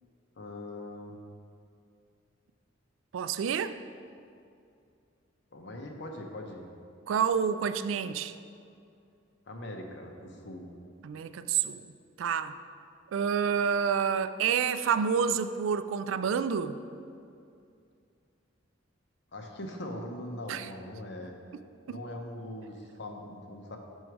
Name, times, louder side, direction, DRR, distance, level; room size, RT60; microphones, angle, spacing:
voice 1, 0.4-1.2 5.5-6.7 9.5-10.7 19.3-21.3 21.9-23.8, left 1 dB, 60° left, 2 dB, 0.8 m, -41 dB
voice 2, 3.1-3.8 7.1-8.3 11.0-11.9 12.2-12.6 13.1-16.8 20.5-20.7 21.9-22.0, right 7 dB, 75° right, 12 dB, 0.3 m, -28 dB
6.3 x 6.2 x 4.6 m, 2.5 s
head